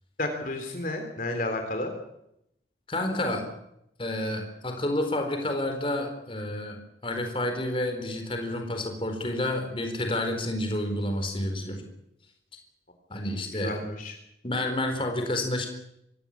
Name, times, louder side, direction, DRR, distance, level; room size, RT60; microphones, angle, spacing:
voice 1, 0.2-1.9 13.5-14.2, left 1 dB, 50° left, 5 dB, 3.5 m, -31 dB
voice 2, 2.9-3.4 4.0-11.8 13.1-13.8 14.4-15.7, left 1 dB, 30° left, 5 dB, 4.3 m, -29 dB
25.0 x 17.0 x 8.7 m, 0.80 s
head